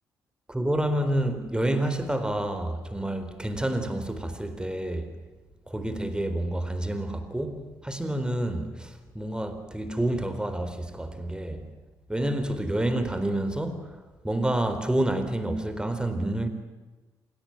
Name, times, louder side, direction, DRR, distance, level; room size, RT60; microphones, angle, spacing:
voice 1, 0.5-5.1 5.7-11.7 12.1-13.9 14.2-16.5, right 1 dB, 10° right, 4.1 m, -28 dB
27.5 x 18.0 x 9.1 m
supercardioid pair, 55°, 8 cm